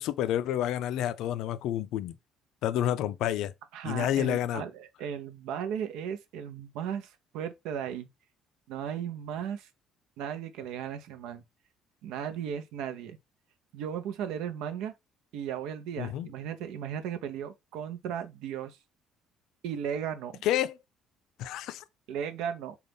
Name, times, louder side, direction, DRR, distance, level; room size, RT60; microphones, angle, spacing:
voice 1, 0.0-2.2 2.6-3.5 3.8-4.6 16.0-16.3 20.4-20.8 21.4-21.8, left 11 dB, 70° left, 0.3 m, -29 dB
voice 2, 3.7-8.1 8.7-9.7 10.2-11.4 12.0-13.2 13.7-14.9 15.3-18.8 19.6-20.4 22.1-22.8, right 8 dB, 85° right, 0.6 m, -36 dB
3.9 x 2.3 x 3.4 m
cardioid pair, 145°, 0 cm